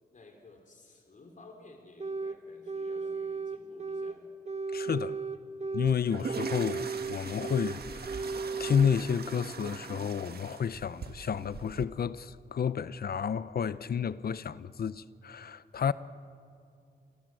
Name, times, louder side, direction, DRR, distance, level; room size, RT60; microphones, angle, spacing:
voice 1, 0.1-4.2, left 2 dB, 50° left, 3.5 m, -54 dB
sound 1, 2.0-2.4 2.7-4.2 4.5-6.0 6.3-7.8 8.1-9.0, right 4 dB, 45° right, 1.1 m, -35 dB
voice 2, 4.7-5.2 5.7-8.1 8.6-15.9, left 7 dB, 70° left, 0.7 m, -31 dB
sound 2, 5.9-11.9, right 5 dB, 75° right, 1.5 m, -41 dB
28.0 x 27.0 x 7.7 m
wide cardioid pair, 135°, 17 cm